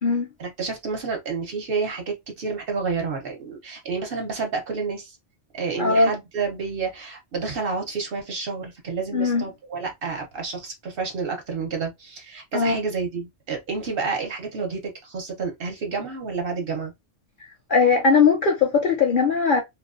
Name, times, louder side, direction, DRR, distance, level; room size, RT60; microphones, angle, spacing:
voice 1, 0.4-5.1 5.5-16.9, right 4 dB, 55° right, 0.8 m, -29 dB
voice 2, 5.8-6.1 9.1-9.4 12.5-12.8 17.7-19.6, left 5 dB, 60° left, 0.6 m, -19 dB
2.3 x 2.2 x 2.4 m
omnidirectional pair, 1.3 m